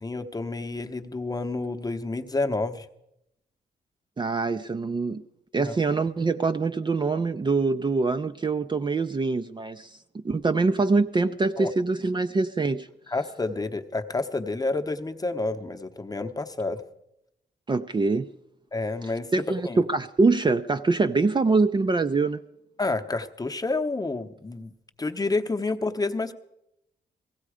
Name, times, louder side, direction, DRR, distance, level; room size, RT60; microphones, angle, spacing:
voice 1, 0.0-2.9 5.6-5.7 11.6-11.7 13.1-16.8 18.7-19.8 22.8-24.7 25.0-26.3, left 3 dB, 20° left, 6 dB, 0.9 m, -29 dB
voice 2, 4.2-5.2 5.5-9.9 10.2-12.9 17.7-18.3 19.3-22.4, right 3 dB, 25° right, 8 dB, 0.5 m, -24 dB
16.5 x 16.0 x 4.9 m, 0.83 s
cardioid pair, 95°, 18 cm